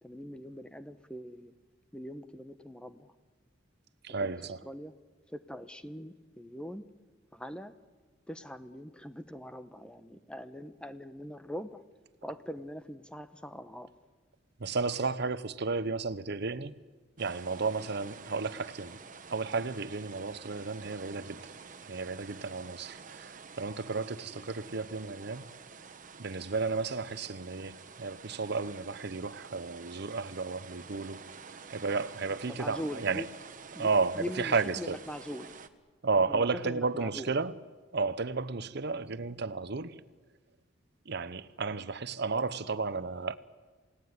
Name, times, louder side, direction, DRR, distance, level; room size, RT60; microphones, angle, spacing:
voice 1, 0.0-1.6 1.9-3.1 4.2-4.3 4.6-4.9 5.3-6.9 7.3-7.8 8.3-11.8 12.2-13.9 32.3-33.3 33.7-33.9 34.1-35.5 36.3-37.3, equal, 5° left, 0.9 m, -42 dB
voice 2, 4.0-4.6 14.6-16.8 17.2-19.0 19.3-21.5 21.9-25.5 26.2-31.3 31.7-33.3 33.8-35.0 36.0-37.5 37.9-40.0 41.1-43.4, right 4 dB, 60° right, 0.8 m, -33 dB
sound 1, 17.2-35.7, right 5 dB, 45° right, 1.2 m, -49 dB
28.5 x 17.5 x 9.6 m
head